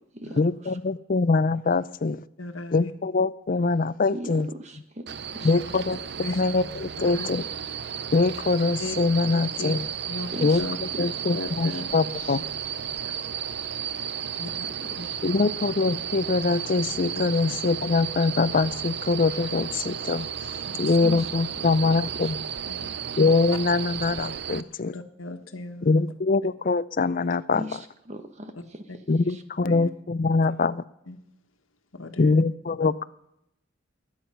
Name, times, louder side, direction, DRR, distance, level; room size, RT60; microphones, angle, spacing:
voice 1, 0.4-2.2 2.7-4.5 5.4-7.4 8.1-9.8 10.4-10.6 11.0-12.4 15.2-22.4 23.2-24.9 25.9-27.6 29.1-30.8 32.2-33.0, left 3 dB, 40° left, 17 dB, 0.5 m, -23 dB
voice 2, 2.4-2.9 5.4-5.6 6.2-6.4 7.0-7.3 8.8-9.0 9.3-9.7 10.1-10.3 10.6-12.4 14.4-14.7 15.0-15.1 17.1-17.3 20.6-20.9 22.7-22.9 24.5-26.1 28.9-29.0 29.6-29.9 31.1-31.2 31.9-32.4 32.8-32.9, left 2 dB, 75° left, 7 dB, 1.5 m, -37 dB
voice 3, 4.1-5.5 10.3-10.6 10.9-11.0 11.7-11.8 14.4-14.5 14.8-15.1 21.0-21.3 21.9-22.3 27.5-28.8 29.3-29.4, equal, 35° right, 8 dB, 1.3 m, -39 dB
sound 1, 5.1-24.6, right 8 dB, 55° right, 0.6 m, -33 dB
21.5 x 9.0 x 5.7 m, 0.80 s
head